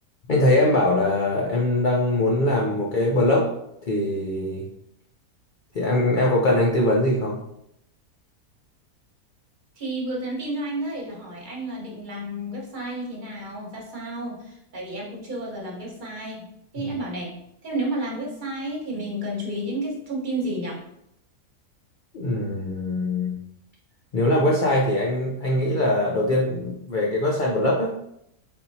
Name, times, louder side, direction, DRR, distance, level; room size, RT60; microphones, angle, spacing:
voice 1, 0.3-3.5 3.9-4.7 5.7-7.4 16.8-16.9 22.1-23.4 24.1-27.9, left 1 dB, 70° left, -3 dB, 0.4 m, -22 dB
voice 2, 9.8-16.5 16.7-17.3 17.6-20.8, right 1 dB, 35° right, -3 dB, 1.2 m, -31 dB
4.3 x 3.6 x 2.7 m, 0.78 s
omnidirectional pair, 1.6 m